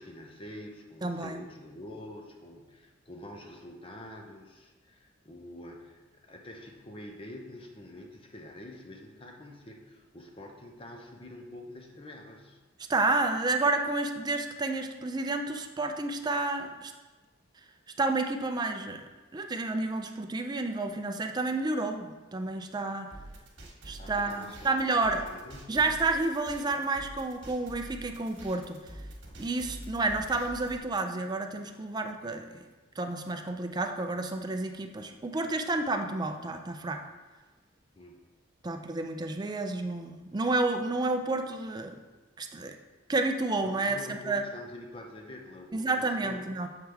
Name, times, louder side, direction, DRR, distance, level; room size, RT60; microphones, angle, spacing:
voice 1, 0.0-12.6 24.0-25.8 37.9-38.2 43.6-46.4, left 1 dB, 30° left, 2 dB, 0.7 m, -46 dB
voice 2, 1.0-1.4 12.9-16.9 18.0-23.1 23.9-25.2 25.7-28.8 29.4-32.6 33.0-37.0 38.6-42.0 42.4-42.8 43.1-44.4 45.7-46.7, right 3 dB, 20° right, 5 dB, 0.4 m, -30 dB
sound 1, 23.1-30.8, right 1 dB, 65° right, 1.5 m, -46 dB
8.0 x 4.6 x 3.4 m, 1.2 s
head